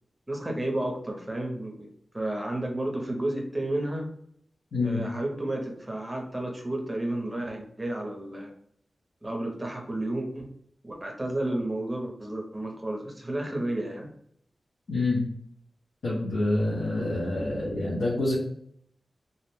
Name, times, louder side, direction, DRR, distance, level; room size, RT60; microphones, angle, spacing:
voice 1, 0.3-1.9 2.1-4.1 4.8-8.5 9.2-10.5 10.8-14.1, right 1 dB, 20° right, 1 dB, 0.6 m, -31 dB
voice 2, 14.9-15.2 16.0-18.3, left 2 dB, 85° left, -6 dB, 0.7 m, -27 dB
2.5 x 2.1 x 3.0 m, 0.67 s
wide cardioid pair, 110°, 0 cm